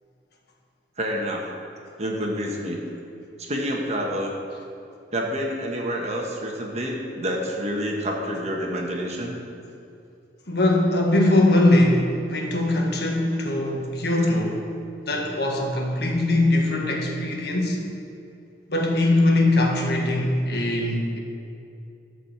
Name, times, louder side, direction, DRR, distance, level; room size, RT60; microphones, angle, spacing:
voice 1, 1.0-1.4 2.0-2.8 3.4-4.3 5.1-9.4, equal, 40° right, -1 dB, 1.4 m, -28 dB
voice 2, 10.5-14.7 15.1-17.8 18.7-21.2, left 1 dB, 65° left, 1 dB, 1.6 m, -21 dB
13.5 x 5.0 x 7.3 m, 2.6 s
head